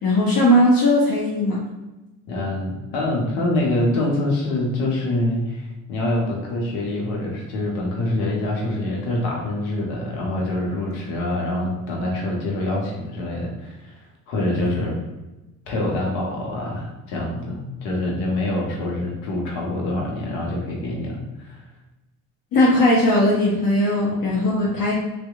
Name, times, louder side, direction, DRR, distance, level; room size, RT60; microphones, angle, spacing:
voice 1, 0.0-1.6 22.5-24.9, left 1 dB, 50° left, -5 dB, 0.7 m, -18 dB
voice 2, 2.3-14.9 15.7-21.6, left 1 dB, 80° left, -2 dB, 0.8 m, -25 dB
2.7 x 2.1 x 2.3 m, 1.1 s
hypercardioid pair, 60°, 44 cm